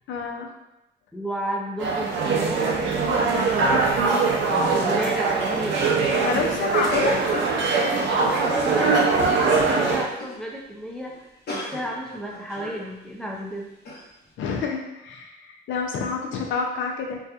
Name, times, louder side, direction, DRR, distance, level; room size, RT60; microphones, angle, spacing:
voice 1, 0.1-0.5 6.2-7.2 14.4-17.2, left 5 dB, 75° left, 1 dB, 0.5 m, -28 dB
voice 2, 1.1-3.1 3.5-4.0 4.4-5.8 7.9-13.7, equal, 5° left, -2 dB, 0.4 m, -33 dB
sound 1, 1.8-10.1, right 4 dB, 70° right, 0.5 m, -22 dB
sound 2, 6.7-9.1 9.6-9.8 10.1-10.5 10.7-10.8 11.1-12.9 13.3-13.4 13.9-14.0, left 1 dB, 55° left, 0.8 m, -36 dB
2.6 x 2.3 x 2.3 m, 0.89 s
cardioid pair, 90°, 20 cm